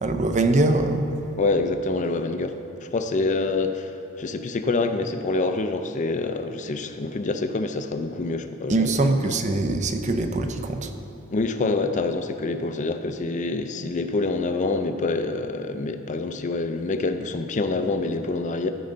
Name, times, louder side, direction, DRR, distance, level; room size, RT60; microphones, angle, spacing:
voice 1, 0.0-1.1 8.7-10.9, right 2 dB, 35° right, 7 dB, 0.6 m, -22 dB
voice 2, 1.4-8.9 11.3-18.7, left 3 dB, 35° left, 8 dB, 0.5 m, -26 dB
14.0 x 5.5 x 3.9 m, 2.8 s
head